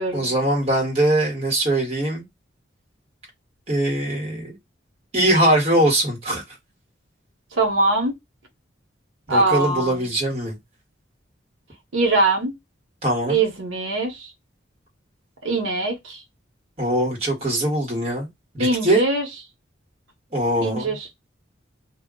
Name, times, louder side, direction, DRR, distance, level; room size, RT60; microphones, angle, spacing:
voice 1, 0.1-2.2 3.7-4.6 5.1-6.4 9.3-10.6 13.0-13.4 16.8-18.3 18.5-19.0 20.3-20.9, right 1 dB, 30° right, 1.2 m, -21 dB
voice 2, 7.5-8.1 9.3-10.1 11.9-12.6 13.3-14.3 15.4-16.2 18.6-19.3 20.6-21.1, right 2 dB, 85° right, 1.0 m, -22 dB
2.3 x 2.2 x 3.7 m
head